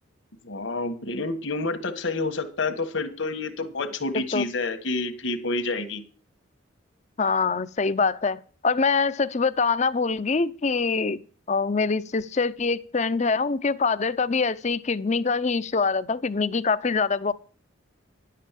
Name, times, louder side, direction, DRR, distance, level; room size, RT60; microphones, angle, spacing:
voice 1, 0.4-6.0, left 3 dB, 70° left, 1.5 m, -29 dB
voice 2, 4.1-4.5 7.2-11.2 11.5-17.3, left 4 dB, 35° left, 0.5 m, -24 dB
11.0 x 7.5 x 7.3 m
head